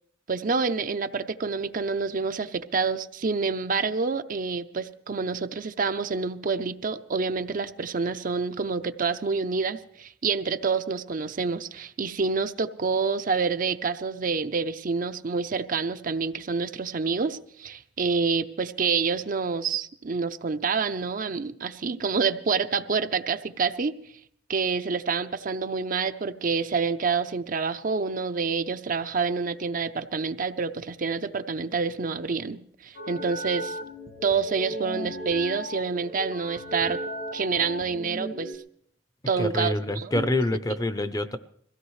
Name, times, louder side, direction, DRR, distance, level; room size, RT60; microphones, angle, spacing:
voice 1, 0.3-24.0 24.5-33.8 34.2-37.0 37.3-38.5 39.3-40.3, right 5 dB, 50° right, 0.6 m, -27 dB
sound 1, 32.9-38.5, equal, 60° left, 1.5 m, -36 dB
voice 2, 39.4-41.4, left 1 dB, 20° left, 0.6 m, -26 dB
22.0 x 16.0 x 3.2 m
head